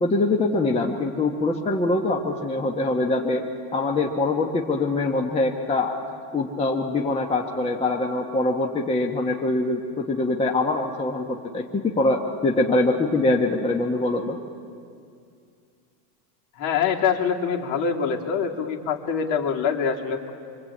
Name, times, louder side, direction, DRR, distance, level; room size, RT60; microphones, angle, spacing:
voice 1, 0.0-3.4 3.7-5.9 6.3-14.4, left 2 dB, 15° left, 1 dB, 1.2 m, -23 dB
voice 2, 16.6-20.3, left 6 dB, 50° left, 1 dB, 2.9 m, -24 dB
25.5 x 24.5 x 8.6 m, 2.3 s
supercardioid pair, 145°, 47 cm